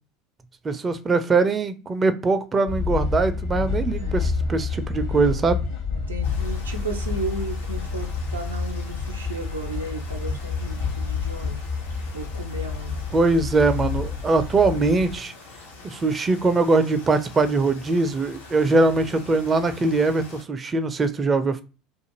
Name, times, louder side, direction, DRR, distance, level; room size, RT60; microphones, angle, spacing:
voice 1, 0.6-5.6 13.1-15.3 15.8-21.6, right 3 dB, 25° right, 0.4 m, -22 dB
sound 1, 2.7-15.1, left 5 dB, 60° left, 1.0 m, -29 dB
voice 2, 3.9-4.3 5.9-11.6 12.1-13.0, right 3 dB, 85° right, 0.5 m, -34 dB
sound 2, 6.2-20.4, left 3 dB, 75° left, 0.7 m, -44 dB
2.5 x 2.4 x 2.9 m
figure-of-eight pair, 70°, 0 cm